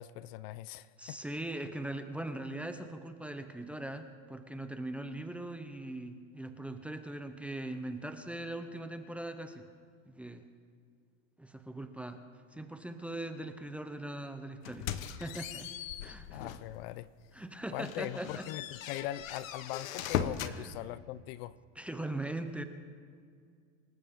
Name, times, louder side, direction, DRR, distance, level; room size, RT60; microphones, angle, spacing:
voice 1, 0.0-1.2 16.3-17.1 17.7-21.6, left 14 dB, 55° left, 18 dB, 0.5 m, -41 dB
voice 2, 1.0-9.7 10.1-10.5 11.4-12.2 12.5-14.9 15.2-15.7 16.0-16.5 17.3-18.5 20.5-20.7 21.8-22.6, right 1 dB, 5° right, 8 dB, 0.6 m, -40 dB
sound 1, 14.7-16.7 17.2-17.3 17.8-20.6, left 9 dB, 90° left, 1.1 m, -38 dB
26.5 x 14.0 x 3.6 m, 2.2 s
supercardioid pair, 140°, 39 cm